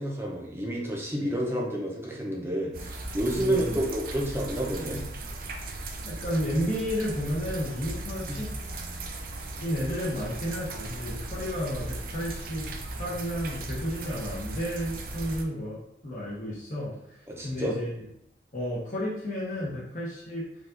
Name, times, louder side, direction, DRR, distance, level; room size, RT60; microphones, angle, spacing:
voice 1, 0.0-5.0 8.3-8.4 17.3-17.8, right 1 dB, 15° right, -2 dB, 0.8 m, -30 dB
sound 1, 2.7-15.4, right 2 dB, 50° right, 0.5 m, -37 dB
voice 2, 3.4-3.8 6.0-8.5 9.6-17.2 17.4-17.9 18.5-20.5, equal, 45° left, -6 dB, 1.1 m, -32 dB
4.9 x 2.7 x 3.9 m, 0.78 s
head